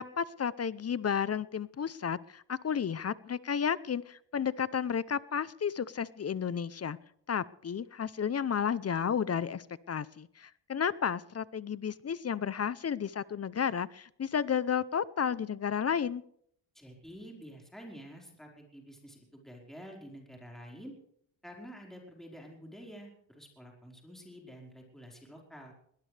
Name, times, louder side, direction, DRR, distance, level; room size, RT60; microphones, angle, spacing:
voice 1, 0.0-7.0 7.3-16.2, left 7 dB, 35° left, 18 dB, 0.6 m, -32 dB
voice 2, 16.7-20.9 21.4-25.7, equal, ahead, 0 dB, 4.8 m, -49 dB
21.5 x 18.0 x 3.4 m, 0.68 s
cardioid pair, 125°, 45 cm